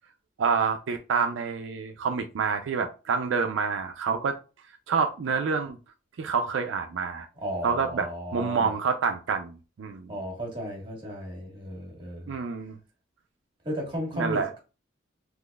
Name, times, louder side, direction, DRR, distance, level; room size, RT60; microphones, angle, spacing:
voice 1, 0.4-4.4 4.9-5.8 6.2-7.3 7.6-10.1 12.3-12.8 14.1-14.5, right 5 dB, 75° right, 0.4 m, -27 dB
voice 2, 7.4-8.7 10.1-12.3 13.6-14.6, equal, 25° right, 1.3 m, -34 dB
3.9 x 2.9 x 2.2 m
head